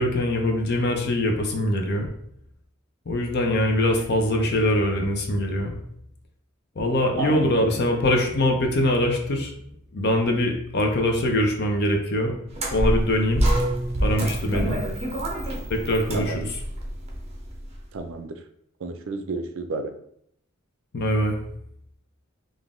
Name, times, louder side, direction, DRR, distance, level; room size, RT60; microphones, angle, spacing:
voice 1, 0.0-2.1 3.1-5.8 6.8-9.5 9.9-12.3 12.7-13.4 14.0-14.8 15.7-16.4 20.9-21.4, left 1 dB, 50° left, 3 dB, 0.7 m, -23 dB
voice 2, 7.2-7.8 14.5-15.0 16.1-16.6 17.9-18.4 18.8-19.9, right 3 dB, 65° right, 8 dB, 0.4 m, -32 dB
sound 1, 12.5-17.8, right 1 dB, 30° right, 0.8 m, -27 dB
3.9 x 2.5 x 3.6 m, 0.71 s
head